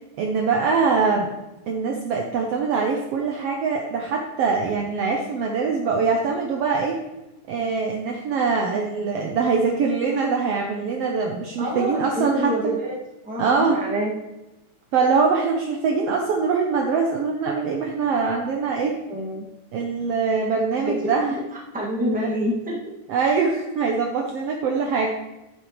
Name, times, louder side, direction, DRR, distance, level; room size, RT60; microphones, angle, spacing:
voice 1, 0.2-1.3 1.7-6.9 7.5-12.5 13.4-13.8 14.9-18.9 19.7-21.4 22.1-22.3 23.1-25.1, right 5 dB, 70° right, 1 dB, 1.6 m, -23 dB
voice 2, 11.6-12.9 13.2-14.1 19.1-19.5 20.9-21.0 21.3-21.4 21.7-22.8, right 1 dB, 5° right, -5 dB, 1.4 m, -26 dB
11.0 x 9.3 x 3.2 m, 1.0 s
omnidirectional pair, 3.5 m